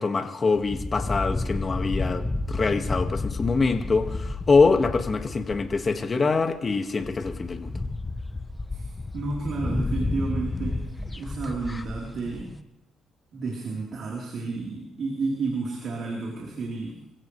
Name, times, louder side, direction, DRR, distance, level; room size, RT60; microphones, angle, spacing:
voice 1, 0.0-7.7, left 4 dB, 35° left, 6 dB, 1.8 m, -24 dB
sound 1, 0.6-6.1 6.7-6.8 7.0-12.5, left 2 dB, 20° left, 0.9 m, -31 dB
voice 2, 8.7-10.8 11.2-12.5 13.3-17.0, right 3 dB, 60° right, -2 dB, 3.8 m, -31 dB
26.5 x 16.0 x 3.3 m, 0.88 s
cardioid pair, 90°, 0 cm